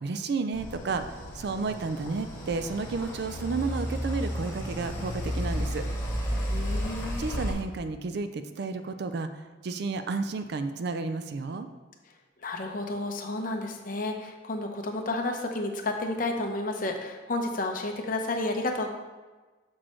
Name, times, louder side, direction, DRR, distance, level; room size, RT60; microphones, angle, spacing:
voice 1, 0.0-5.9 7.2-11.7, right 4 dB, 55° right, 9 dB, 0.4 m, -32 dB
sound 1, 0.5-7.5, equal, 10° left, 1.2 m, -33 dB
voice 2, 6.5-7.2 12.4-18.9, left 2 dB, 45° left, 3 dB, 0.7 m, -31 dB
6.3 x 6.0 x 3.1 m, 1.3 s
head